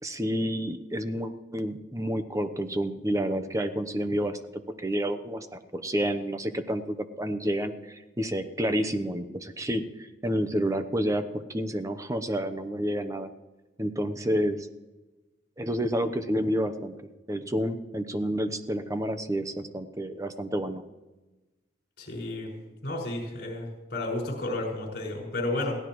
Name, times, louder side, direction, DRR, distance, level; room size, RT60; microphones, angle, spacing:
voice 1, 0.0-4.4 4.8-13.3 13.8-14.7 15.6-17.0 17.3-20.8, equal, 15° right, 9 dB, 0.8 m, -29 dB
voice 2, 22.0-22.5 22.8-25.8, left 2 dB, 55° left, -2 dB, 5.5 m, -32 dB
22.0 x 16.5 x 3.1 m, 1.1 s
head